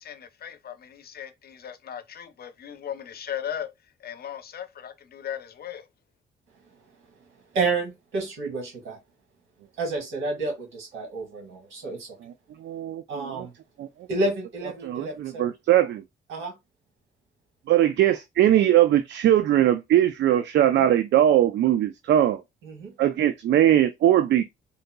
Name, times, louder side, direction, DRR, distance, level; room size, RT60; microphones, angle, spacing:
voice 1, 0.0-3.7 4.0-5.9, left 9 dB, 50° left, 0.6 m, -37 dB
voice 2, 7.5-9.0 9.8-12.2 13.1-13.5 14.1-15.5 16.3-16.5 20.8-20.9 22.6-22.9, right 3 dB, 85° right, 1.9 m, -30 dB
voice 3, 12.6-13.5 13.8-13.9 14.8-16.0 17.7-22.4 23.0-24.4, right 12 dB, 65° right, 0.4 m, -20 dB
3.8 x 2.7 x 2.2 m
cardioid pair, 90°, 20 cm